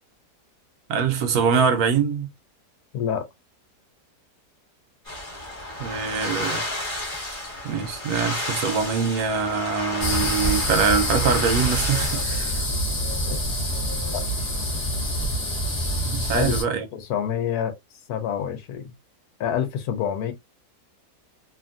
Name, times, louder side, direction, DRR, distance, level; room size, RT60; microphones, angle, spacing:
voice 1, 0.9-2.3 5.8-6.6 7.6-12.7 16.0-16.9, right 6 dB, 70° right, 1.0 m, -24 dB
voice 2, 2.9-3.3 13.3-13.4 14.1-14.2 16.3-16.5 16.9-17.7 18.1-18.9 19.4-20.3, left 9 dB, 75° left, 1.1 m, -27 dB
sound 1, 5.0-12.2, left 1 dB, 20° left, 1.3 m, -31 dB
sound 2, 10.0-16.6, equal, 40° left, 0.9 m, -26 dB
2.8 x 2.5 x 2.3 m
omnidirectional pair, 1.8 m